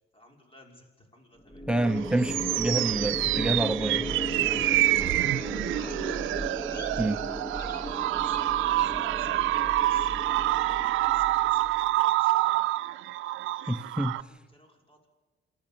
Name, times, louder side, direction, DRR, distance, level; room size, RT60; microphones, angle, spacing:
voice 1, 0.1-1.7 2.2-2.5 4.0-6.0 6.4-7.3 7.9-12.7 13.4-13.8 14.1-15.1, left 1 dB, 25° left, 2 dB, 5.9 m, -57 dB
sound 1, 1.5-11.9, equal, 10° left, 1.5 m, -36 dB
voice 2, 1.7-4.1 7.0-7.3 13.7-14.2, right 1 dB, 5° right, 11 dB, 0.9 m, -28 dB
sound 2, 1.8-14.2, right 16 dB, 85° right, 0.5 m, -27 dB
Bird vocalization bird call bird song, 3.8-8.9, left 4 dB, 55° left, 2.6 m, -51 dB
27.5 x 14.0 x 7.1 m, 1.3 s
cardioid pair, 90°, 20 cm